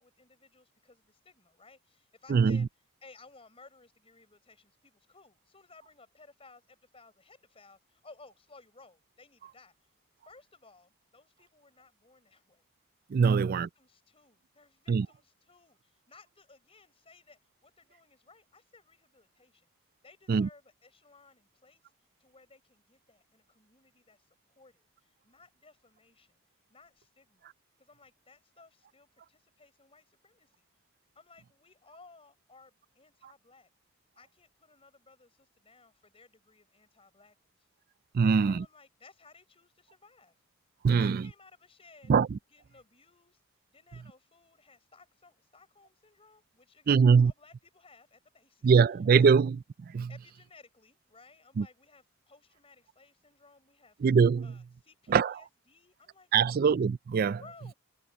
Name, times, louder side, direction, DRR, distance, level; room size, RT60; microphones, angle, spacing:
voice 1, 0.0-2.7 3.0-9.9 10.2-12.6 13.3-19.7 20.0-21.9 22.2-26.4 26.7-27.5 27.8-30.6 31.1-33.7 34.2-37.5 38.2-40.4 40.9-42.1 42.5-43.4 43.7-48.7 49.1-49.4 50.1-54.0 54.4-56.6 57.4-57.7, left 3 dB, 25° left, 4.9 m, -58 dB
voice 2, 2.3-2.7 13.1-13.7 14.9-15.1 20.3-20.5 38.1-38.6 40.8-41.2 42.1-42.4 46.9-47.3 48.6-49.6 49.8-50.1 51.6-51.7 54.0-54.6 55.1-55.4 56.3-57.4, right 6 dB, 45° right, 0.3 m, -23 dB
open air
head